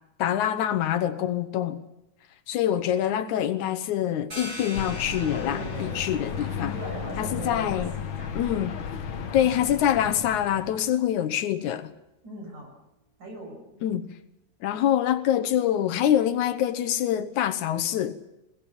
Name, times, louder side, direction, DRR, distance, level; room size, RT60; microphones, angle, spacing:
voice 1, 0.2-1.8 2.5-6.7 7.2-7.9 8.4-8.8 9.3-11.9 13.8-14.1 14.6-18.2, left 10 dB, 75° left, 2.3 m, -25 dB
sound 1, 4.3-9.7, equal, 20° right, 6.7 m, -44 dB
sound 2, 4.7-10.9, left 7 dB, 55° left, 1.6 m, -34 dB
voice 2, 5.4-6.0 6.3-8.3 12.2-12.7 13.2-13.6, right 2 dB, 65° right, 8.2 m, -40 dB
21.0 x 18.5 x 7.1 m
omnidirectional pair, 3.6 m